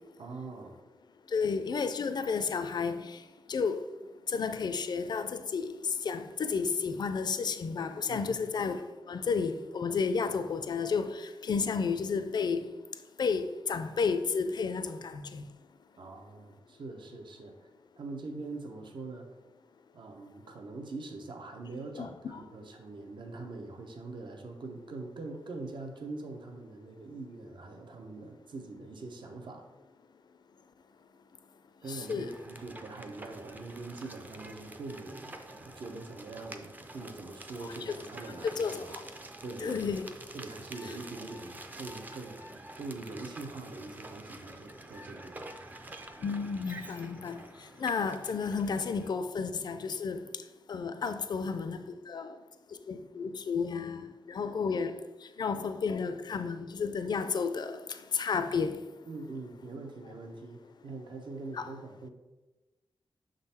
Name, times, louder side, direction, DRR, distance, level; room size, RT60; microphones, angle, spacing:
voice 1, 0.2-0.8 8.1-8.3 16.0-17.5 18.0-19.3 19.9-29.6 31.8-35.4 35.6-38.9 39.4-39.9 40.3-45.5 59.1-62.1, right 3 dB, 70° right, 0.8 m, -43 dB
voice 2, 1.3-3.1 3.5-3.8 4.3-5.7 6.0-12.7 13.2-15.4 22.0-22.4 31.9-32.3 37.8-38.0 38.6-39.0 39.6-40.1 46.2-47.4 47.8-50.2 50.7-51.8 52.1-52.3 52.9-55.0 55.4-57.8 58.1-58.8 61.5-61.7, left 5 dB, 55° left, 0.4 m, -32 dB
sound 1, 31.8-49.1, right 2 dB, 20° right, 0.4 m, -48 dB
6.3 x 3.8 x 4.2 m
wide cardioid pair, 150°, 8 cm